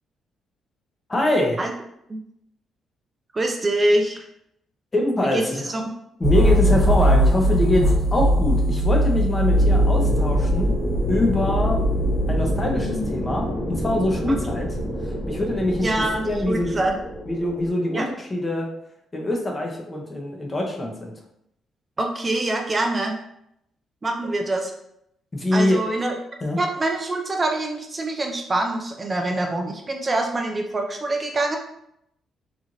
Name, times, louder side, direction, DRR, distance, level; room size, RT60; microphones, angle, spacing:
voice 1, 1.1-1.6 4.9-5.7 6.2-10.7 11.1-11.8 12.3-14.7 15.0-16.9 17.3-18.7 19.1-21.1 25.3-25.8 26.4-26.6, left 1 dB, 25° left, 0 dB, 0.7 m, -24 dB
voice 2, 3.3-4.3 5.3-5.8 14.3-14.4 15.8-16.9 17.9-18.1 22.0-23.2 24.0-24.7 25.5-26.1 26.6-31.6, right 2 dB, 25° right, 2 dB, 0.3 m, -25 dB
sound 1, 6.2-13.0, equal, 10° right, 1.2 m, -20 dB
sound 2, 9.5-17.7, equal, 50° left, 1.1 m, -27 dB
3.0 x 2.4 x 2.5 m, 0.77 s
cardioid pair, 90°, 0 cm